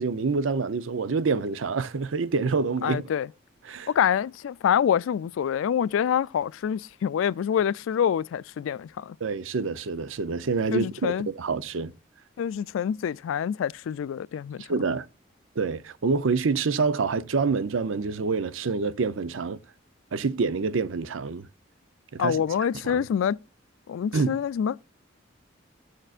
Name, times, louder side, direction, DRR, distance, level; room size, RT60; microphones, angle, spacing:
voice 1, 0.0-3.0 3.6-3.9 9.2-11.9 14.7-15.1 15.6-19.6 20.1-21.5 22.1-22.4 22.8-23.0 24.1-24.4, right 4 dB, 90° right, 0.6 m, -27 dB
voice 2, 2.8-3.3 3.9-9.2 10.7-11.3 12.4-14.6 22.2-23.4 23.9-24.7, left 8 dB, 85° left, 0.3 m, -26 dB
14.5 x 6.6 x 2.4 m
head